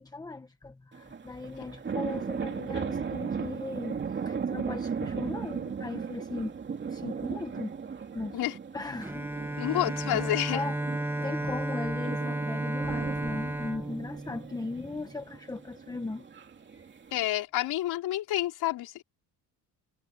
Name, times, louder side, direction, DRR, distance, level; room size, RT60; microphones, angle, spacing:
voice 1, 0.0-4.0 4.2-6.5 6.9-7.7 8.1-8.4 8.7-10.0 10.5-10.8 11.2-16.3, left 3 dB, 10° left, 1.0 m, -38 dB
sound 1, 0.9-17.2, right 6 dB, 30° right, 2.6 m, -37 dB
Bowed string instrument, 9.0-15.0, right 1 dB, 5° right, 1.4 m, -33 dB
voice 2, 9.6-10.6 17.1-19.0, left 14 dB, 75° left, 4.4 m, -29 dB
sound 2, 12.8-15.0, right 8 dB, 45° right, 3.7 m, -47 dB
cardioid pair, 145°, 38 cm